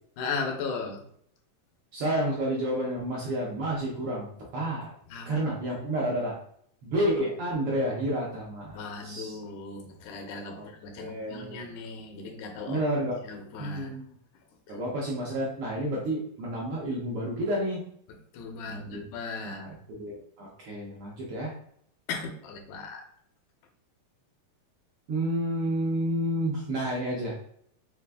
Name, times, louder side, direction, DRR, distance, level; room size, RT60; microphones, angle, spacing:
voice 1, 0.2-1.0 5.1-5.3 8.7-12.8 13.2-13.9 18.3-19.6 22.1-23.0, left 4 dB, 85° left, 3 dB, 2.2 m, -37 dB
voice 2, 1.9-4.9 5.3-6.4 6.8-9.4 10.5-10.7 11.0-11.6 12.6-13.2 13.6-14.1 14.7-17.8 18.7-19.0 19.4-21.5 25.1-27.3, right 1 dB, 70° right, -3 dB, 1.4 m, -30 dB
5.0 x 2.5 x 3.4 m, 0.65 s
omnidirectional pair, 3.3 m